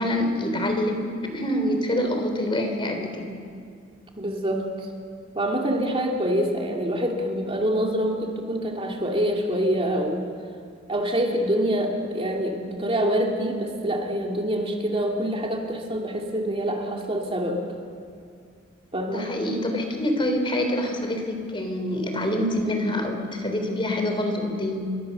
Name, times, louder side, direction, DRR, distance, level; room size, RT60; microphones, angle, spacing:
voice 1, 0.0-3.4 19.1-25.0, left 1 dB, 25° left, 4 dB, 3.6 m, -26 dB
voice 2, 4.2-4.9 5.4-10.2 10.9-17.6 18.9-19.3, equal, 30° right, 0 dB, 2.4 m, -26 dB
29.5 x 23.5 x 6.7 m, 2.3 s
head